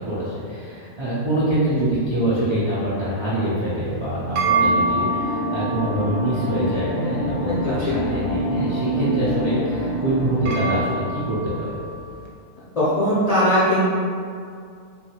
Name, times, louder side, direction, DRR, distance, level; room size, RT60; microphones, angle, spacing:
voice 1, 0.0-11.7, right 1 dB, 50° right, -11 dB, 0.3 m, -25 dB
sound 1, 3.8-12.2, right 2 dB, 80° right, 1.0 m, -28 dB
sound 2, 4.5-10.8, right 1 dB, 30° right, 0.9 m, -27 dB
voice 2, 7.5-7.9 12.8-13.9, equal, 55° left, -11 dB, 0.4 m, -20 dB
2.9 x 2.6 x 2.8 m, 2.3 s
omnidirectional pair, 1.5 m